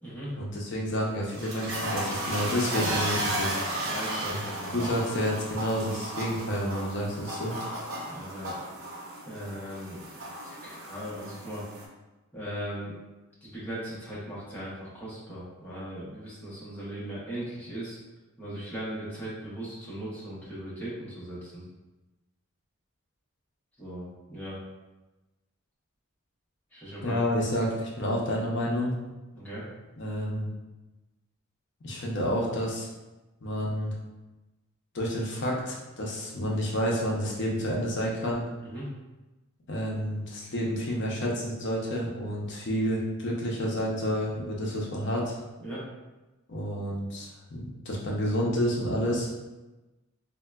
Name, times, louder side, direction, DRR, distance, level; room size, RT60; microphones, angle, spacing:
voice 1, 0.3-3.6 4.3-4.4 4.7-7.5 27.0-29.0 30.0-30.5 31.8-32.9 33.4-33.9 34.9-38.4 39.7-45.4 46.5-49.3, equal, 55° left, -3 dB, 0.6 m, -29 dB
sound 1, 1.0-11.8, right 1 dB, 65° right, 0.6 m, -34 dB
voice 2, 3.8-4.9 8.1-8.6 9.3-10.0 10.4-11.6 12.3-12.9 13.4-18.0 18.4-21.6 23.8-24.6 26.7-27.5 29.3-29.6 38.6-38.9 45.6-45.8, right 1 dB, 10° left, -9 dB, 0.8 m, -38 dB
3.6 x 2.2 x 2.2 m, 1.1 s
head